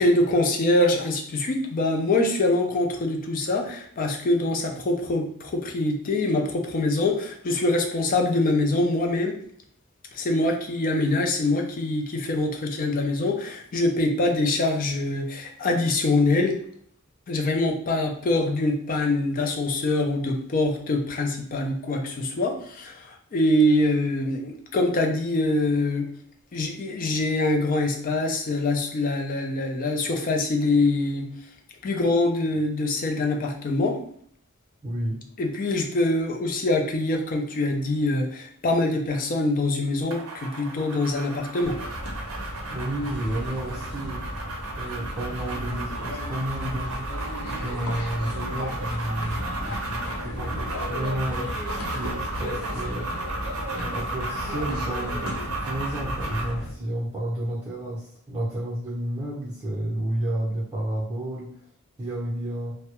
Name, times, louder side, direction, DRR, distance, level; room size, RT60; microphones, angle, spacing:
voice 1, 0.0-9.3 10.1-16.6 17.3-26.0 26.5-31.3 31.8-34.0 35.4-41.8, left 2 dB, 40° left, 2 dB, 0.4 m, -24 dB
voice 2, 34.8-35.2 42.7-44.2 44.8-47.0 47.5-51.5 51.9-53.1 53.7-61.5 62.0-62.7, right 1 dB, 20° right, -9 dB, 0.6 m, -31 dB
sound 1, 40.1-56.6, right 2 dB, 70° right, 0.5 m, -35 dB
sound 2, 41.6-56.7, equal, 90° left, 0.7 m, -34 dB
2.2 x 2.0 x 2.9 m, 0.62 s
head